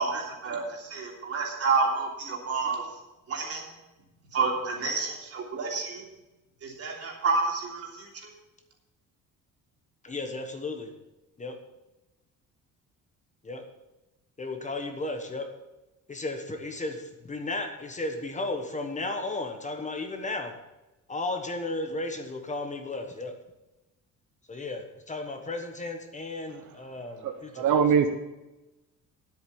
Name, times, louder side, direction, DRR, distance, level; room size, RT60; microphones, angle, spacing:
voice 1, 0.0-2.8 3.3-3.6 4.3-6.1 6.6-8.3, right 4 dB, 50° right, -1 dB, 3.2 m, -29 dB
voice 2, 10.0-10.9 11.4-11.6 13.4-13.6 14.4-15.5 16.1-20.5 21.1-23.3 24.5-27.8, left 2 dB, 25° left, 5 dB, 1.1 m, -34 dB
voice 3, 27.2-28.1, right 7 dB, 70° right, 6 dB, 1.0 m, -23 dB
10.5 x 8.0 x 6.9 m, 1.0 s
cardioid pair, 145°, 31 cm